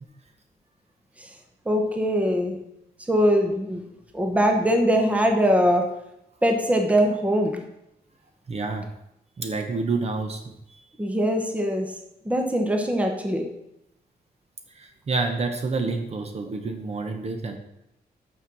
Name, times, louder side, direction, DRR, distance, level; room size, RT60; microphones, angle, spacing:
voice 1, 1.7-2.6 3.1-3.8 4.1-5.9 6.4-7.6 11.0-11.9 12.2-13.5, equal, 10° right, 4 dB, 1.0 m, -22 dB
voice 2, 8.5-8.8 9.4-10.8 14.7-17.6, right 3 dB, 40° right, 5 dB, 0.9 m, -28 dB
6.5 x 6.4 x 6.0 m, 0.82 s
wide cardioid pair, 160°, 16 cm